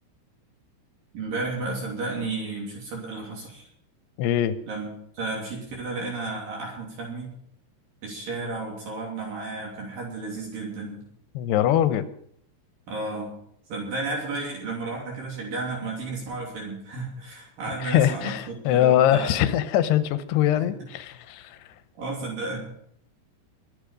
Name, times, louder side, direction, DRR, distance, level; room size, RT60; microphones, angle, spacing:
voice 1, 1.1-3.7 4.7-4.9 5.1-7.3 8.0-11.0 12.9-13.3 13.7-19.4 20.6-20.7 22.0-22.7, right 3 dB, 60° right, -2 dB, 4.6 m, -33 dB
voice 2, 4.2-4.6 11.4-12.1 17.8-21.6, left 11 dB, 90° left, 12 dB, 2.9 m, -22 dB
23.0 x 8.9 x 5.2 m, 0.68 s
omnidirectional pair, 4.7 m